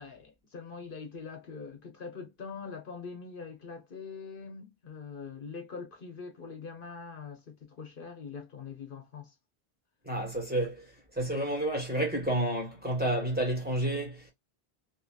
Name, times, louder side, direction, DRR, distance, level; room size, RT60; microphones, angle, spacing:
voice 1, 0.0-9.4, left 5 dB, 60° left, 0.9 m, -43 dB
voice 2, 10.0-10.9 11.1-14.3, right 1 dB, 10° right, 1.2 m, -30 dB
2.8 x 2.7 x 2.3 m
omnidirectional pair, 1.0 m